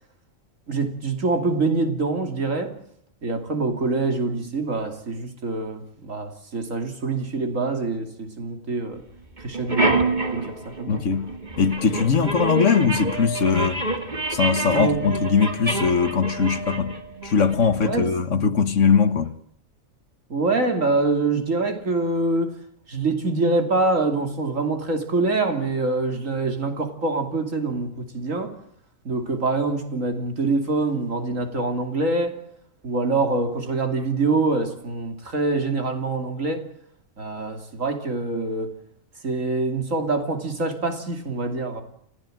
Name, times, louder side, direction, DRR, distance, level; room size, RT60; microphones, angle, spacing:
voice 1, 0.7-2.7 3.2-9.0 9.4-11.0 14.7-15.1 17.8-18.1 20.3-22.6 22.9-28.5 29.0-32.4 32.8-36.7 37.2-38.7 39.2-41.8, right 3 dB, 70° right, 3.2 m, -25 dB
sound 1, 9.0-9.1 9.4-18.0, right 2 dB, 35° right, 2.4 m, -27 dB
voice 2, 10.9-11.3 11.6-13.9 14.3-17.0 17.2-19.3, left 6 dB, 60° left, 1.8 m, -21 dB
29.5 x 15.5 x 7.7 m
omnidirectional pair, 1.4 m